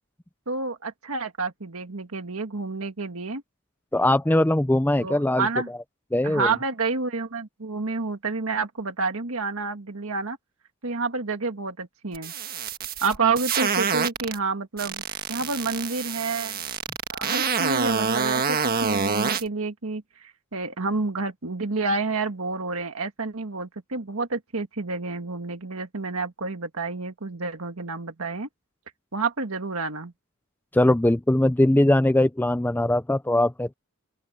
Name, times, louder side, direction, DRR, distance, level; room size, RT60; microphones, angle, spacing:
voice 1, 0.5-3.4 5.0-5.7 6.2-10.4 10.8-12.3 13.0-15.0 15.3-16.6 17.1-28.5 29.1-30.1, right 4 dB, 70° right, 1.7 m, -29 dB
voice 2, 3.9-5.5 6.1-6.5 30.7-33.7, left 1 dB, 10° left, 0.5 m, -21 dB
sound 1, 12.1-14.4 14.8-19.4, right 5 dB, 45° right, 1.5 m, -26 dB
open air
head